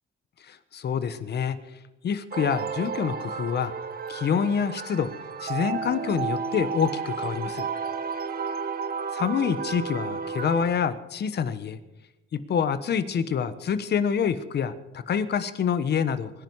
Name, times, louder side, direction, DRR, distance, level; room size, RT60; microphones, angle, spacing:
voice 1, 0.4-1.6 2.0-3.7 4.1-5.1 5.4-7.7 9.1-11.8 12.3-16.3, left 7 dB, 55° left, 12 dB, 1.3 m, -27 dB
sound 1, 2.3-10.7, right 5 dB, 50° right, 1.2 m, -32 dB
23.5 x 11.0 x 4.8 m, 1.0 s
cardioid pair, 90°, 20 cm